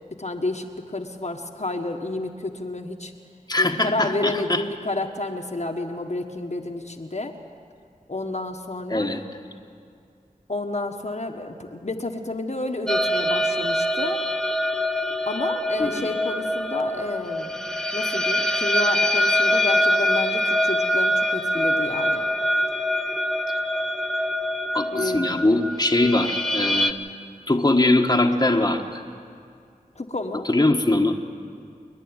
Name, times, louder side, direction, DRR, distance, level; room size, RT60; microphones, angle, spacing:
voice 1, 0.2-3.1 3.6-7.3 8.1-9.1 10.5-14.2 15.3-17.6 17.9-22.3 24.9-25.5 29.9-30.5, left 2 dB, 50° left, 2 dB, 1.5 m, -30 dB
voice 2, 3.5-4.6 8.9-9.2 15.8-16.1 24.7-26.9 27.5-29.0 30.4-31.2, left 2 dB, 25° left, 2 dB, 1.5 m, -21 dB
sound 1, 12.9-26.9, left 1 dB, 5° left, 0.9 m, -24 dB
28.5 x 10.5 x 9.7 m, 2.2 s
wide cardioid pair, 45°, 15 cm